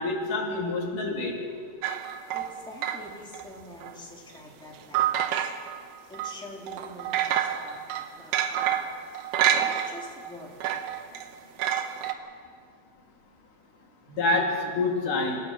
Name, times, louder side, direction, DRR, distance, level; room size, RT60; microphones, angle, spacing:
voice 1, 0.0-1.4 14.1-15.4, left 2 dB, 80° left, 0 dB, 4.2 m, -27 dB
sound 1, 1.8-3.5 3.8-3.9 4.9-5.8 6.1-6.4 6.7-10.3 10.6-12.1, right 10 dB, 85° right, 2.6 m, -28 dB
voice 2, 2.3-5.4 6.1-9.0 9.6-10.5 12.0-12.4, left 2 dB, ahead, -3 dB, 2.8 m, -46 dB
27.0 x 16.0 x 6.5 m, 2.1 s
omnidirectional pair, 3.7 m